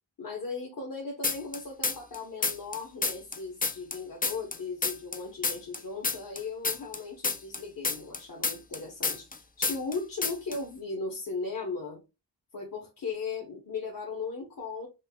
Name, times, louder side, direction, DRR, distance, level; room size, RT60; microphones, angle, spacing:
voice 1, 0.2-9.3 9.6-12.0 12.5-14.9, left 4 dB, 45° left, 1.0 m, -37 dB
sound 1, 1.2-2.2 2.4-5.2 5.4-9.4 9.6-10.0 10.2-10.6, left 4 dB, 20° left, 0.3 m, -29 dB
5.4 x 2.0 x 2.3 m
wide cardioid pair, 70°, 46 cm